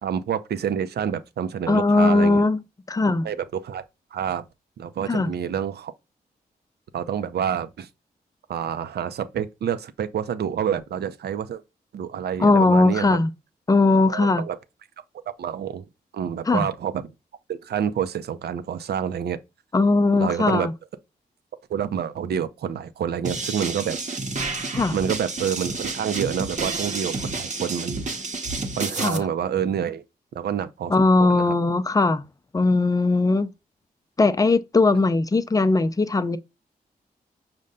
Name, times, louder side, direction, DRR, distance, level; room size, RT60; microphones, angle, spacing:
voice 1, 0.0-2.4 3.2-3.8 4.1-4.4 4.8-5.9 6.9-7.9 8.5-11.6 11.9-13.2 14.1-14.6 15.4-15.8 16.1-17.1 17.5-19.4 20.2-20.7 21.7-24.0 24.9-28.1 28.8-30.0 30.3-31.5, right 8 dB, 70° right, 0.5 m, -28 dB
voice 2, 1.7-2.6 2.9-3.3 5.1-5.3 12.4-13.3 13.7-14.4 16.5-16.7 19.7-20.7 24.7-24.9 29.0-29.2 30.9-32.2 32.5-33.5 34.2-36.4, left 3 dB, 20° left, 0.5 m, -19 dB
sound 1, 23.2-29.2, right 3 dB, 45° right, 0.8 m, -30 dB
5.3 x 2.1 x 3.7 m
cardioid pair, 55°, 17 cm